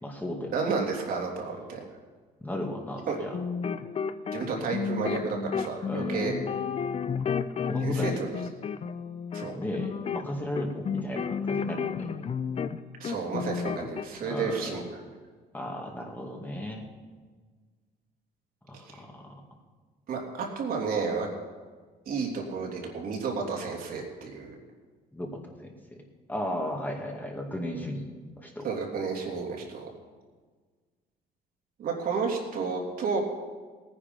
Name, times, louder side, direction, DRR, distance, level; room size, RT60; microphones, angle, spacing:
voice 1, 0.0-0.5 2.4-3.4 5.9-6.3 7.7-8.2 9.4-12.1 14.3-14.8 15.5-16.9 18.7-19.3 25.1-25.8 26.3-28.1 28.4-28.7, left 1 dB, 10° left, 1 dB, 2.2 m, -35 dB
voice 2, 0.5-1.8 3.1-3.2 4.3-6.3 7.8-8.1 9.3-9.6 13.0-14.8 18.7-19.0 20.1-21.3 22.1-24.5 28.6-29.9 31.8-33.2, right 5 dB, 60° right, 0 dB, 3.0 m, -31 dB
sound 1, 3.2-12.8 13.0-14.1, left 6 dB, 35° left, 0.6 m, -32 dB
17.5 x 10.0 x 5.4 m, 1.5 s
cardioid pair, 110°, 17 cm